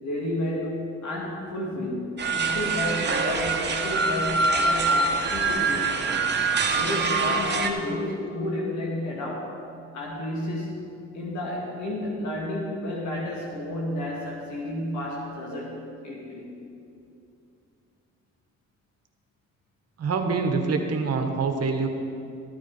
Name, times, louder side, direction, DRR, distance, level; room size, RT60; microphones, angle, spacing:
voice 1, 0.0-6.2 6.7-9.6 9.9-16.6, left 1 dB, 70° left, -3 dB, 2.2 m, -31 dB
sound 1, 2.2-7.7, right 4 dB, 35° right, 1.3 m, -24 dB
voice 2, 20.0-21.9, right 4 dB, 55° right, 4 dB, 1.3 m, -25 dB
14.0 x 9.2 x 4.8 m, 2.5 s
cardioid pair, 90°, 30 cm